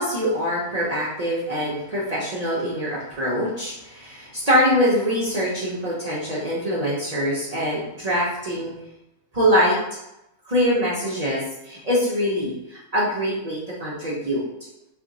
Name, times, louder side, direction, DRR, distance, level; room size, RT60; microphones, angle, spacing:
voice 1, 0.0-8.7 9.3-9.8 10.5-14.5, equal, 55° right, -7 dB, 0.4 m, -24 dB
2.5 x 2.4 x 3.9 m, 0.88 s
omnidirectional pair, 1.5 m